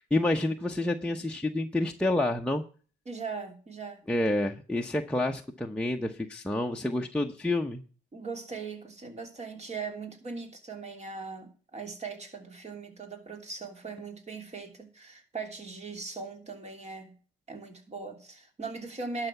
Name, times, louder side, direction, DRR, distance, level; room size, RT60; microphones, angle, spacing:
voice 1, 0.0-2.6 4.1-7.8, left 1 dB, 5° left, 1 dB, 0.9 m, -28 dB
voice 2, 3.1-4.0 8.1-17.1 17.5-19.3, right 4 dB, 35° right, 4 dB, 3.1 m, -39 dB
12.0 x 5.6 x 7.1 m, 0.38 s
cardioid pair, 90°, 20 cm